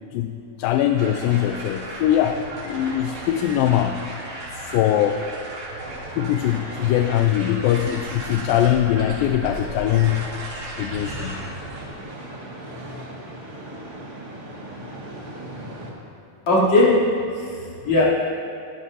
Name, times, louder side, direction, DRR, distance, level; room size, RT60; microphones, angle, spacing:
voice 1, 0.6-4.0 4.7-5.2 6.2-10.3 10.8-11.4, left 11 dB, 80° left, 5 dB, 2.2 m, -21 dB
sound 1, 1.0-11.9, right 1 dB, 90° right, 5.0 m, -35 dB
sound 2, 10.9-15.9, right 1 dB, 60° right, 0.7 m, -38 dB
voice 2, 16.5-18.0, left 1 dB, 45° left, -7 dB, 4.2 m, -19 dB
26.0 x 12.0 x 2.8 m, 2.3 s
omnidirectional pair, 4.3 m